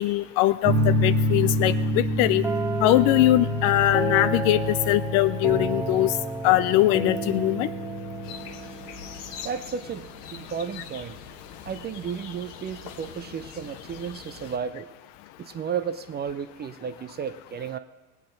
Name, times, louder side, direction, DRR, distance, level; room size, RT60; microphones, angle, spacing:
voice 1, 0.0-2.4 2.8-6.1 6.4-7.7, left 16 dB, 45° left, 16 dB, 0.4 m, -21 dB
sound 1, 0.6-8.3, left 1 dB, 40° right, 1.5 m, -28 dB
sound 2, 2.4-10.2, right 3 dB, 5° right, 0.8 m, -33 dB
sound 3, 8.2-14.6, left 7 dB, 70° left, 1.1 m, -43 dB
voice 2, 9.4-11.2 11.7-14.9 15.4-17.8, right 7 dB, 20° right, 11 dB, 0.5 m, -33 dB
19.0 x 8.4 x 3.9 m, 1.2 s
hypercardioid pair, 75°, 48 cm